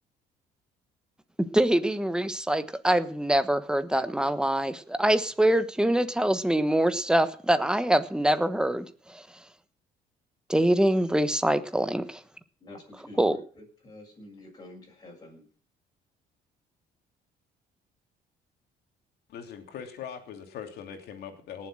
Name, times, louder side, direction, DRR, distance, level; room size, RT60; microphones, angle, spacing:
voice 1, 1.5-9.2 10.5-12.2 13.2-13.4, right 1 dB, 5° right, 11 dB, 1.2 m, -24 dB
voice 2, 12.6-15.5, left 2 dB, 25° left, -1 dB, 7.3 m, -48 dB
voice 3, 19.3-21.7, left 8 dB, 70° left, 5 dB, 3.0 m, -41 dB
18.5 x 7.6 x 6.3 m, 0.43 s
cardioid pair, 110°, 17 cm